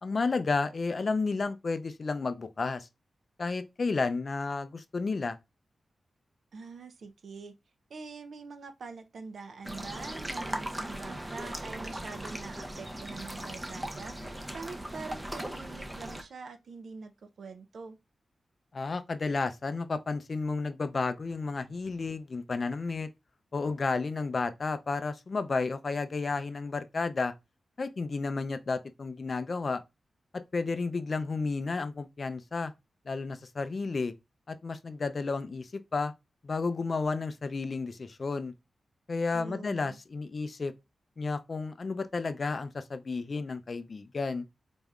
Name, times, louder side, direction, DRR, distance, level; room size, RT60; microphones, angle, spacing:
voice 1, 0.0-2.9 3.4-5.4 18.7-23.1 23.5-27.3 27.8-29.8 30.5-32.7 33.1-34.1 34.5-36.1 36.4-38.5 39.1-40.7 41.2-44.4, left 4 dB, 45° left, 0.4 m, -32 dB
voice 2, 6.5-7.5 7.9-18.0 39.3-40.0, right 4 dB, 70° right, 0.5 m, -44 dB
sound 1, 9.6-16.2, right 1 dB, 15° right, 0.5 m, -38 dB
4.1 x 3.5 x 2.4 m
wide cardioid pair, 140°, 0 cm